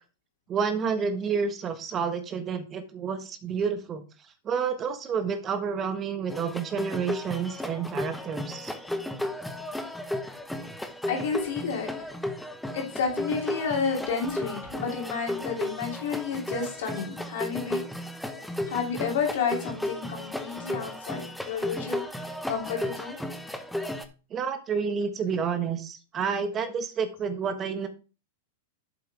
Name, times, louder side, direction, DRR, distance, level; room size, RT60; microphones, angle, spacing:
voice 1, 0.5-4.1 4.4-8.7 24.3-27.9, right 6 dB, 25° right, 9 dB, 1.3 m, -29 dB
sound 1, 6.3-24.1, left 1 dB, 5° left, 1.0 m, -34 dB
voice 2, 11.1-12.1 12.7-17.8 18.7-23.2, left 6 dB, 60° left, 1 dB, 3.0 m, -31 dB
8.1 x 7.5 x 3.5 m, 0.32 s
figure-of-eight pair, 100°, 0 cm